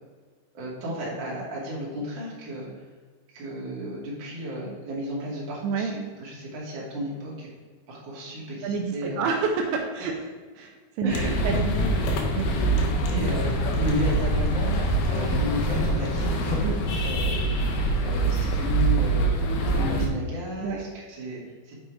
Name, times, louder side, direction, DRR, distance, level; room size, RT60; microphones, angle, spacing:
voice 1, 0.5-2.7 3.3-7.5 7.9-9.3 10.0-10.1 11.0-12.1 13.1-16.7 17.0-17.5 18.0-19.3 19.7-21.8, equal, 35° right, -5 dB, 2.0 m, -33 dB
voice 2, 8.6-10.1 10.6-11.7 12.3-12.5 16.6-16.8 20.6-20.8, right 5 dB, 80° right, 2 dB, 2.9 m, -28 dB
sound 1, 11.1-20.1, right 2 dB, 75° left, 2.5 m, -24 dB
7.7 x 5.8 x 4.7 m, 1.5 s
omnidirectional pair, 5.3 m